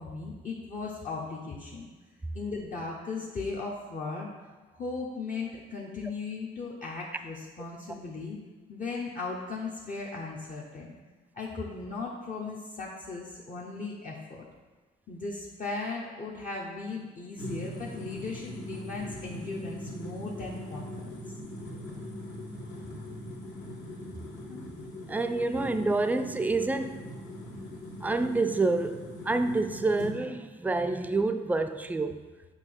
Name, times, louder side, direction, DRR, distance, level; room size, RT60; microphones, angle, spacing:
voice 1, 0.0-1.9 2.3-4.3 4.7-8.4 8.7-10.9 11.3-14.4 15.1-21.2 24.5-24.7, left 3 dB, 40° left, 0.8 m, -37 dB
sound 1, 17.3-30.1, equal, 70° left, 1.8 m, -41 dB
voice 2, 25.1-27.1 27.5-32.3, right 3 dB, 10° right, 0.3 m, -28 dB
6.5 x 2.8 x 5.4 m
cardioid pair, 90°, 20 cm